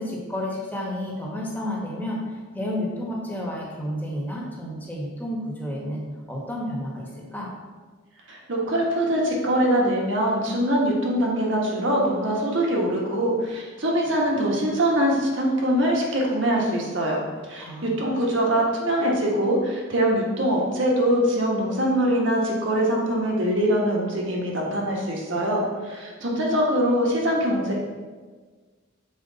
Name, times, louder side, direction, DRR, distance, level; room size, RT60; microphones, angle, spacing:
voice 1, 0.0-7.5 17.1-17.3 17.6-18.0, left 1 dB, 10° left, -3 dB, 1.1 m, -31 dB
voice 2, 8.3-17.2 17.5-27.8, right 1 dB, 65° right, -2 dB, 1.4 m, -23 dB
7.0 x 4.6 x 4.0 m, 1.4 s
head